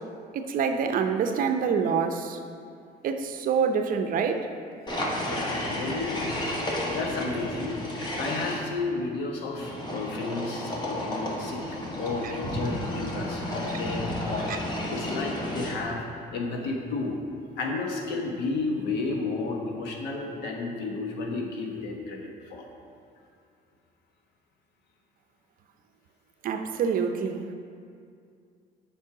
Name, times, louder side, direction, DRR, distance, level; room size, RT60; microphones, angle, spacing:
voice 1, 0.3-2.4 3.0-4.5 12.2-12.3 14.5-14.6 26.4-27.5, right 6 dB, 55° right, 7 dB, 0.6 m, -26 dB
sound 1, 4.9-8.6 9.6-16.0, left 1 dB, 25° left, 1.3 m, -32 dB
voice 2, 5.1-6.6 6.9-7.8 8.2-11.6 12.0-16.0 16.3-17.2 17.6-22.6, left 3 dB, 90° left, 1 dB, 1.2 m, -32 dB
7.4 x 5.4 x 4.9 m, 2.3 s
cardioid pair, 110°, 17 cm